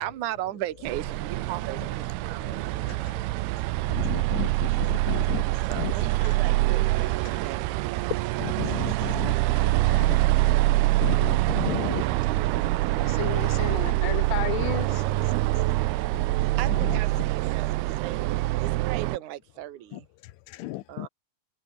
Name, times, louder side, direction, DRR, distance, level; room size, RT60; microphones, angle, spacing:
voice 1, 0.0-3.3 5.6-7.7 16.6-20.1 20.9-21.1, right 14 dB, 60° right, 2.3 m, -37 dB
sound 1, 0.9-19.2, right 19 dB, 80° right, 2.3 m, -25 dB
voice 2, 2.2-4.0 5.7-6.4 7.0-7.6 9.6-10.9 12.6-15.9 17.9-18.0 20.2-20.8, left 16 dB, 75° left, 3.1 m, -38 dB
voice 3, 3.9-5.4 5.8-5.9 8.4-9.3 11.0-12.1 12.3-12.7 16.1-16.3 16.7-17.0 19.9-20.0 20.6-21.1, left 18 dB, 90° left, 3.4 m, -34 dB
omnidirectional pair, 5.3 m